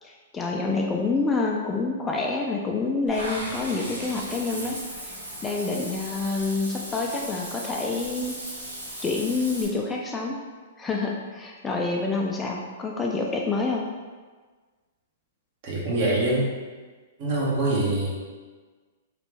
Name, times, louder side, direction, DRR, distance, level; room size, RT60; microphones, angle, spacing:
voice 1, 0.0-8.4 9.0-10.4 10.8-13.9, left 3 dB, 15° left, -1 dB, 0.4 m, -27 dB
Water / Bathtub (filling or washing), 3.1-9.6, right 1 dB, 90° right, 1.2 m, -37 dB
voice 2, 15.6-16.4 17.2-18.1, right 2 dB, 50° right, -5 dB, 1.1 m, -24 dB
3.1 x 2.5 x 3.2 m, 1.4 s
hypercardioid pair, 115°, 0 cm